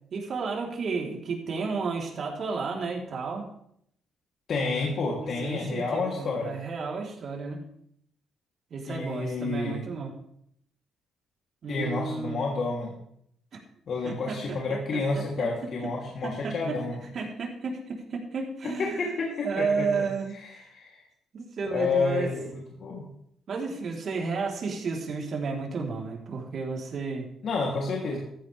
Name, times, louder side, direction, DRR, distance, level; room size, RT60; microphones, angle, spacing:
voice 1, 0.1-3.5 5.2-7.6 8.7-10.1 11.6-12.4 13.5-13.6 14.0-14.6 14.9-15.5 16.2-16.8 17.1-19.0 19.4-20.4 21.3-22.3 23.5-27.3, right 4 dB, 55° right, 0 dB, 3.6 m, -32 dB
voice 2, 4.5-6.5 8.9-9.8 11.7-13.0 13.9-17.0 18.6-20.1 20.4-21.0 21.7-23.0 27.4-28.2, left 3 dB, 60° left, -3 dB, 3.1 m, -30 dB
15.0 x 13.5 x 3.5 m, 0.70 s
cardioid pair, 90°, 0 cm